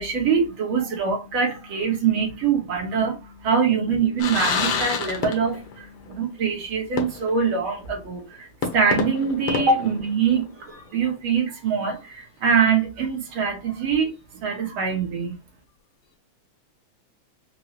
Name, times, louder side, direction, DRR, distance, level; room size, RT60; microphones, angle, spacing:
voice 1, 0.0-14.1 14.4-15.4, right 6 dB, 55° right, 1.6 m, -24 dB
sound 1, 4.2-5.8 6.1-6.2 7.0-7.5 7.9-8.0 8.6-10.6, left 5 dB, 90° left, 1.2 m, -28 dB
5.2 x 2.3 x 3.0 m
omnidirectional pair, 3.5 m